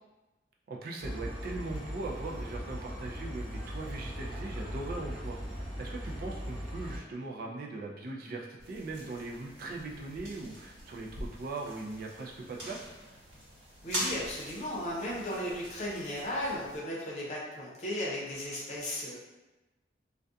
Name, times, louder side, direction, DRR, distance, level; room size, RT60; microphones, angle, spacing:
voice 1, 0.7-5.4 5.8-12.8, right 3 dB, 55° right, -1 dB, 0.3 m, -40 dB
sound 1, 1.0-7.0, equal, 5° right, 0.9 m, -39 dB
sound 2, 8.6-16.8, equal, 80° right, 1.1 m, -43 dB
voice 2, 13.8-19.2, left 1 dB, 40° left, -5 dB, 0.7 m, -35 dB
2.3 x 2.2 x 2.6 m, 1.1 s
head